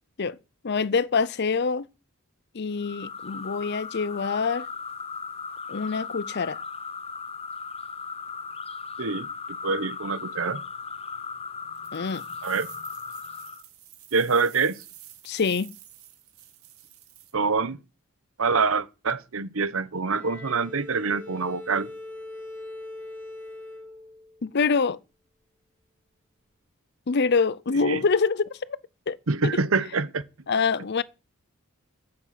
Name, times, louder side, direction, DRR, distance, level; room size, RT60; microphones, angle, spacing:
voice 1, 0.6-1.9 2.5-4.7 5.7-6.6 11.9-12.2 15.2-15.7 24.4-25.0 27.1-28.8 29.1-29.2 30.5-31.0, left 5 dB, 50° left, 0.6 m, -25 dB
sound 1, 2.8-13.6, left 5 dB, 30° left, 0.9 m, -37 dB
voice 2, 9.6-10.6 12.4-12.7 14.1-14.8 17.3-17.8 18.4-21.9 27.8-28.0 29.3-30.2, right 4 dB, 70° right, 0.9 m, -25 dB
sound 2, 11.8-17.3, right 12 dB, 85° right, 2.4 m, -50 dB
Bowed string instrument, 20.1-24.5, left 2 dB, 10° left, 5.1 m, -41 dB
10.0 x 7.7 x 7.5 m
head